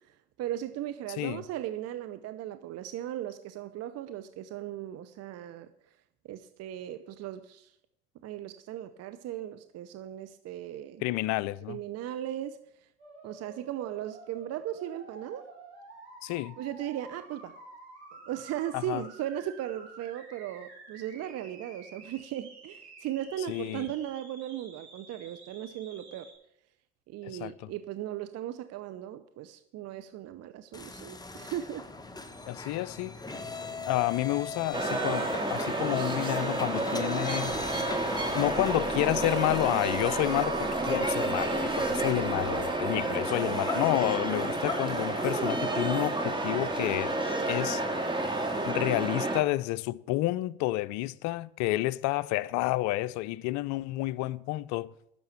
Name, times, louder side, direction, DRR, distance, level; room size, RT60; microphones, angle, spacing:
voice 1, 0.1-5.7 6.3-7.7 8.2-11.0 11.7-12.9 13.2-15.5 16.6-17.5 18.1-26.3 27.1-31.9, right 11 dB, 50° right, 0.7 m, -37 dB
voice 2, 11.0-11.8 16.2-16.6 18.7-19.0 23.5-23.9 27.2-27.7 32.5-33.2 33.8-37.6 38.3-47.2 47.5-47.8 48.7-54.9, left 18 dB, 60° left, 0.6 m, -30 dB
sound 1, 13.0-26.3, right 3 dB, 90° right, 4.2 m, -50 dB
sound 2, 30.7-48.7, left 3 dB, 10° left, 1.3 m, -41 dB
sound 3, 34.7-49.4, right 2 dB, 15° right, 2.1 m, -30 dB
10.5 x 6.9 x 8.2 m
hypercardioid pair, 65°, 32 cm